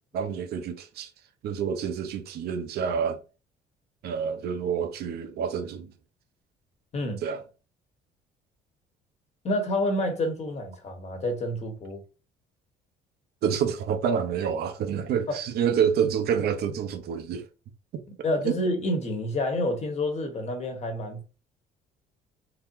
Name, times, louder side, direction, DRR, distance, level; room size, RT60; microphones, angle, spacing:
voice 1, 0.1-1.1 1.4-3.2 4.0-5.9 7.2-7.4 13.4-17.5 17.9-18.0 18.4-18.5, right 7 dB, 70° right, 0.9 m, -28 dB
voice 2, 9.4-12.0 15.3-15.4 18.2-21.2, left 1 dB, 40° left, 1.5 m, -28 dB
4.0 x 2.9 x 2.7 m
cardioid pair, 110°, 17 cm